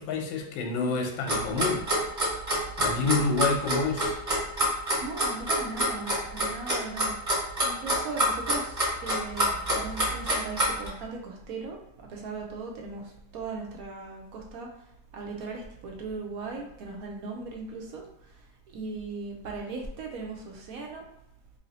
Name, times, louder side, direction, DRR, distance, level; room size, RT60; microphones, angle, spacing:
voice 1, 0.0-1.9 2.8-4.2, left 4 dB, 85° left, 2 dB, 1.4 m, -28 dB
Clock, 1.3-10.9, equal, 30° right, 1.2 m, -26 dB
voice 2, 4.7-9.5 9.7-11.8 12.1-14.7 15.1-18.4 18.7-21.0, right 3 dB, 70° right, 0 dB, 0.8 m, -38 dB
3.1 x 2.8 x 4.0 m, 0.79 s
omnidirectional pair, 2.1 m